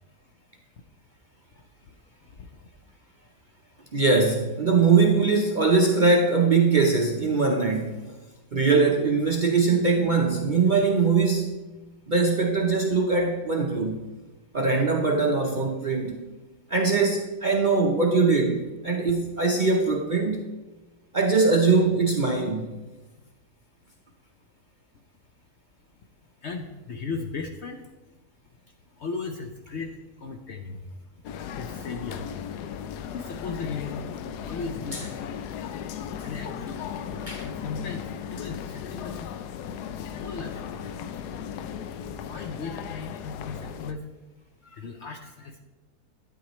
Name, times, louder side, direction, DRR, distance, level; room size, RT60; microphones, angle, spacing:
voice 1, 3.9-8.0 8.5-11.6 12.1-14.0 14.5-16.3 16.7-20.4 21.1-22.7 34.9-35.0 37.3-37.4, right 4 dB, 45° right, 1 dB, 0.6 m, -22 dB
voice 2, 26.4-27.8 29.0-29.9 30.2-30.8 31.6-32.3 33.1-34.0 34.5-35.4 36.2-38.1 38.3-39.3 40.0-40.9 42.2-44.0 44.8-45.6, left 4 dB, 60° left, 4 dB, 0.7 m, -36 dB
sound 1, 31.2-43.9, left 8 dB, 85° left, 1.2 m, -36 dB
11.5 x 9.5 x 3.1 m, 1.2 s
omnidirectional pair, 1.7 m